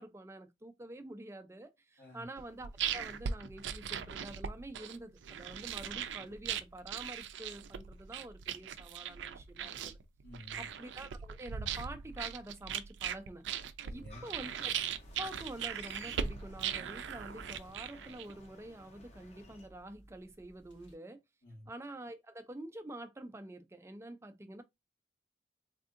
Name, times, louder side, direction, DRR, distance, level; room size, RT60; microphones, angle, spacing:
voice 1, 0.0-10.0 10.6-13.5 13.9-14.8 15.2-21.2 21.7-24.6, right 1 dB, 15° right, 0.3 m, -47 dB
sound 1, 2.4-18.5, right 8 dB, 85° right, 0.4 m, -39 dB
voice 2, 10.2-10.7 13.8-14.2 21.4-21.7, left 1 dB, 70° left, 1.8 m, -51 dB
sound 2, 14.1-19.7, left 3 dB, 35° left, 0.6 m, -57 dB
cringle of plastic sheet, 14.9-21.0, right 1 dB, 90° left, 2.1 m, -58 dB
3.5 x 2.6 x 2.4 m
head